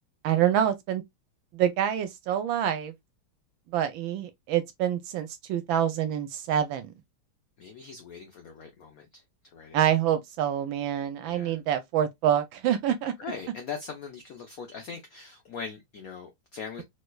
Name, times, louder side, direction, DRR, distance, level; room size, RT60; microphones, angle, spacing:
voice 1, 0.2-1.0 1.5-2.9 3.7-6.9 9.7-13.1, right 10 dB, 75° right, 1.3 m, -26 dB
voice 2, 7.6-9.8 11.2-11.6 13.2-16.8, left 6 dB, 80° left, 0.7 m, -41 dB
3.2 x 3.2 x 2.2 m
omnidirectional pair, 2.4 m